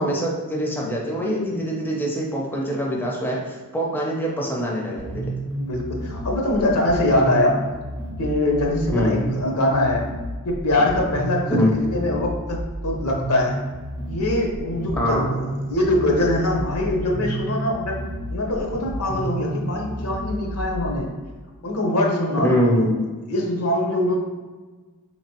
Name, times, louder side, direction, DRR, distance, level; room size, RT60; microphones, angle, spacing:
voice 1, 0.0-5.5 8.9-9.1 11.5-11.7 15.0-15.2 22.4-22.9, equal, 10° left, -2 dB, 0.4 m, -23 dB
sound 1, 5.0-21.0, right 1 dB, 60° right, 0.6 m, -31 dB
voice 2, 5.6-7.6 8.2-10.0 10.4-13.6 14.1-18.0 18.3-21.1 21.6-22.5 23.3-24.2, left 1 dB, 80° left, 0 dB, 0.7 m, -23 dB
3.9 x 3.0 x 2.8 m, 1.3 s
head